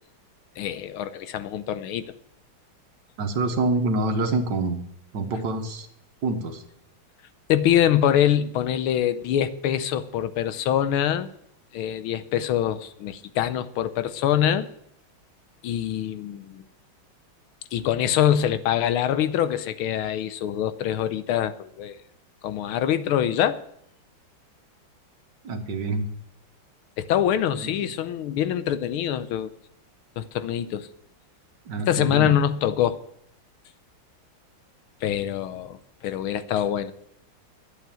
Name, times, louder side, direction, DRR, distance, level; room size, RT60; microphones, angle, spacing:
voice 1, 0.6-2.1 7.5-11.3 11.7-14.7 15.6-16.6 17.7-22.0 22.4-23.6 27.0-29.5 30.2-30.9 31.9-33.0 35.0-35.8 36.0-36.9, left 10 dB, 90° left, 1.6 m, -24 dB
voice 2, 3.2-4.8 5.1-5.9 6.2-6.6 25.4-26.1 27.6-27.7 31.7-32.4, right 2 dB, 60° right, 1.8 m, -26 dB
12.0 x 8.1 x 7.4 m
omnidirectional pair, 2.3 m